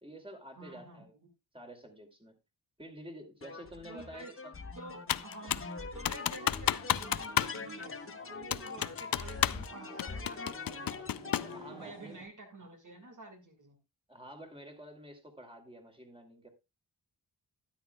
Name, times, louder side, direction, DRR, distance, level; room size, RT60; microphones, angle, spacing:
voice 1, 0.0-1.1 1.5-2.4 2.8-4.5 8.7-9.0 11.5-12.2 14.1-16.5, equal, 15° right, 2.5 m, -49 dB
voice 2, 0.6-1.1 3.9-4.4 4.8-11.1 11.6-13.8, right 2 dB, 45° right, 2.0 m, -50 dB
sound 1, 3.4-11.6, left 4 dB, 30° left, 1.0 m, -44 dB
Computer keyboard, 5.1-5.7 6.1-7.6 7.8-7.9 8.5-9.7 10.0-11.6, left 11 dB, 55° left, 0.5 m, -31 dB
sound 2, 6.1-12.2, right 1 dB, 90° right, 7.1 m, -52 dB
13.0 x 10.0 x 2.2 m
wide cardioid pair, 95°, 41 cm